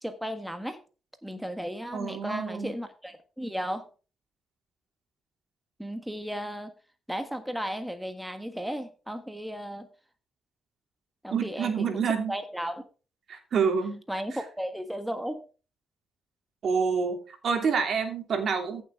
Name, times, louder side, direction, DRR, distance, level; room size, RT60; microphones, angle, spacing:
voice 1, 0.0-0.8 1.2-3.8 5.8-6.7 7.1-9.9 11.2-12.8 14.1-15.4, equal, 5° right, 8 dB, 1.4 m, -35 dB
voice 2, 1.9-2.7 11.3-12.4 13.3-14.0 16.6-18.8, right 5 dB, 55° right, 5 dB, 2.9 m, -27 dB
14.5 x 7.3 x 3.6 m, 0.35 s
cardioid pair, 90°, 0 cm